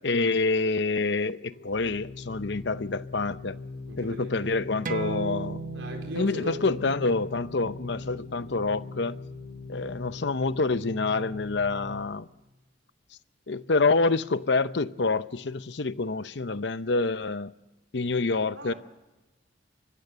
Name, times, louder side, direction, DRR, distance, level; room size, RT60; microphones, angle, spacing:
voice 1, 0.0-3.6 4.0-5.6 6.2-9.2 9.7-12.3 13.5-17.5 17.9-18.7, left 3 dB, 65° left, 0.7 m, -27 dB
Organ, 1.5-12.3, left 3 dB, 85° left, 2.2 m, -41 dB
voice 2, 3.9-4.5 5.8-6.7 7.6-7.7 18.6-18.7, right 1 dB, 85° right, 4.1 m, -39 dB
sound 1, 4.9-10.0, right 4 dB, 45° right, 1.0 m, -39 dB
24.5 x 22.5 x 6.8 m
head